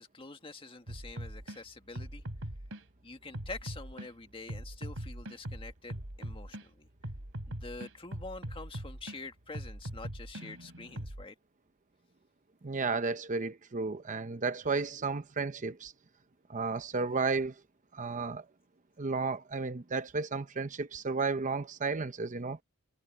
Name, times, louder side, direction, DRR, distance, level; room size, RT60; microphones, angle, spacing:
voice 1, 0.0-2.2 3.0-6.9 7.5-11.4, left 3 dB, 25° left, 1.8 m, -46 dB
sound 1, 0.9-1.6 1.9-2.8 3.3-4.1 4.5-6.6 7.0-9.2 9.5-11.2, right 1 dB, 70° right, 3.1 m, -41 dB
voice 2, 12.6-15.9 16.5-17.5 17.9-18.4 19.0-22.6, right 4 dB, 35° right, 0.8 m, -33 dB
head